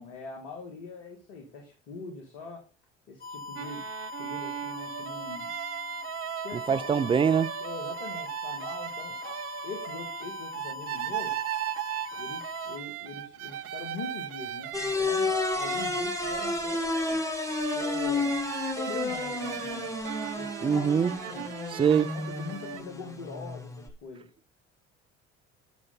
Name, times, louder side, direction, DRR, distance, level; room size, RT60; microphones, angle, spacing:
voice 1, 0.0-2.6 3.1-3.8 4.1-5.5 6.4-7.2 7.6-9.4 9.6-11.4 12.2-15.3 15.5-17.2 17.7-18.5 18.7-19.9 20.2-21.5 22.1-24.3, left 4 dB, 70° left, 2.0 m, -42 dB
sound 1, 3.2-12.8, left 3 dB, 25° left, 2.3 m, -41 dB
sound 2, 3.6-22.8, right 13 dB, 45° right, 0.7 m, -37 dB
voice 2, 6.7-7.5 20.6-21.1 21.7-22.1, right 7 dB, 15° right, 0.3 m, -23 dB
sound 3, 14.7-23.9, left 3 dB, 10° left, 1.5 m, -31 dB
8.1 x 6.4 x 3.9 m
hypercardioid pair, 60°, 33 cm